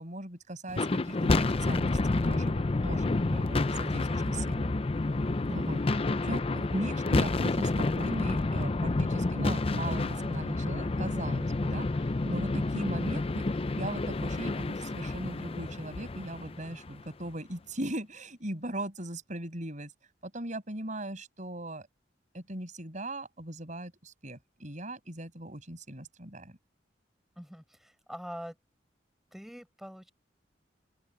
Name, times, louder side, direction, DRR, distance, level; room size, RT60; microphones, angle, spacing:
voice 1, 0.0-4.7 5.5-5.8 6.2-13.5 13.7-19.9 20.2-21.9 22.3-26.6, right 1 dB, 45° right, 7.8 m, -39 dB
sound 1, 0.7-17.1, left 2 dB, 30° left, 0.5 m, -29 dB
voice 2, 5.5-5.9 27.3-28.6 29.3-30.1, equal, ahead, 5.0 m, -44 dB
open air
head